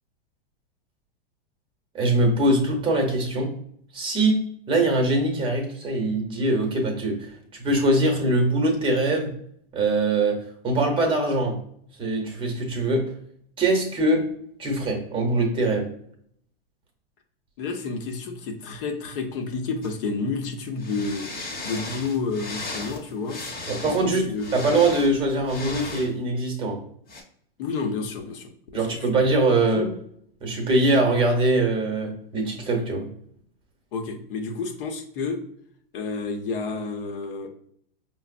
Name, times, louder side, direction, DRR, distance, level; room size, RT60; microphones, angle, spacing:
voice 1, 1.9-3.6 3.9-9.3 9.7-11.6 12.0-13.1 13.6-14.3 14.6-15.9 23.7-26.8 28.7-29.9 30.4-33.1, right 2 dB, 15° right, 2 dB, 0.8 m, -23 dB
voice 2, 17.6-21.3 21.6-23.4 23.8-24.7 27.6-29.0 29.7-29.9 33.9-35.4 35.9-37.5, left 4 dB, 65° left, 4 dB, 0.8 m, -30 dB
sound 1, 19.8-19.9 20.8-26.1 27.1-27.2, left 3 dB, 30° left, 0.9 m, -36 dB
5.0 x 2.0 x 2.4 m, 0.67 s
supercardioid pair, 135°, 29 cm